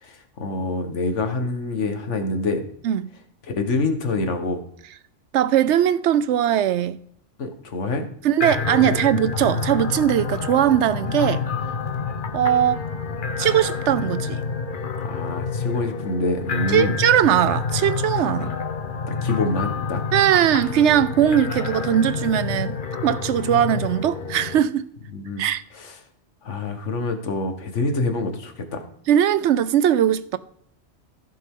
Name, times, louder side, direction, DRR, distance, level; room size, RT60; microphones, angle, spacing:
voice 1, 0.0-2.6 3.5-4.6 7.4-8.0 8.8-9.0 15.0-17.0 19.1-20.0 25.1-25.5 25.7-26.0 26.4-28.8, left 3 dB, 80° left, 1.7 m, -26 dB
voice 2, 5.3-7.0 8.2-11.4 12.3-12.8 13.4-14.4 16.7-18.6 20.1-24.9 25.4-25.6 29.1-30.4, right 10 dB, 75° right, 0.9 m, -20 dB
sound 1, 8.4-24.6, left 5 dB, 50° left, 0.9 m, -28 dB
15.0 x 7.5 x 3.7 m
omnidirectional pair, 1.2 m